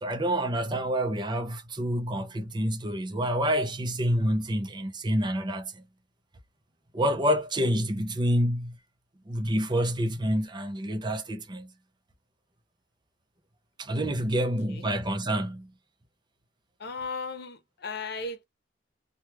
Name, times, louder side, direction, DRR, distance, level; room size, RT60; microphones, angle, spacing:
voice 1, 0.0-5.8 6.9-8.8 9.3-11.7 13.8-15.7, equal, 25° right, 0.6 m, -28 dB
voice 2, 14.4-14.9 16.8-18.4, left 3 dB, 60° left, 0.8 m, -37 dB
3.0 x 2.3 x 3.3 m
head